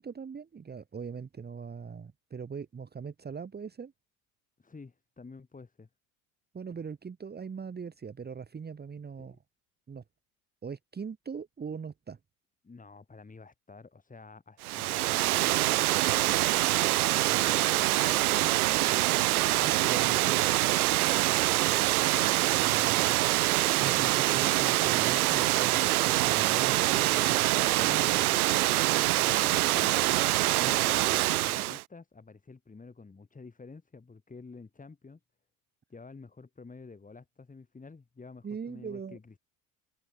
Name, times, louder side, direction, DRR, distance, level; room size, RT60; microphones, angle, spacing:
voice 1, 0.0-3.9 6.5-9.4 9.9-10.0 10.6-12.2 19.5-20.5 22.5-23.1 23.8-27.4 27.8-28.2 30.6-30.8 38.4-39.2, right 6 dB, 20° right, 1.6 m, -40 dB
voice 2, 4.6-5.9 9.2-9.4 12.6-16.4 17.0-19.0 21.6-22.6 24.0-24.6 27.3-28.6 29.0-30.2 30.7-35.2 35.9-39.4, left 4 dB, 20° left, 3.9 m, -49 dB
Water, 14.6-31.8, right 17 dB, 80° right, 0.6 m, -25 dB
hypercardioid pair, 70°, 43 cm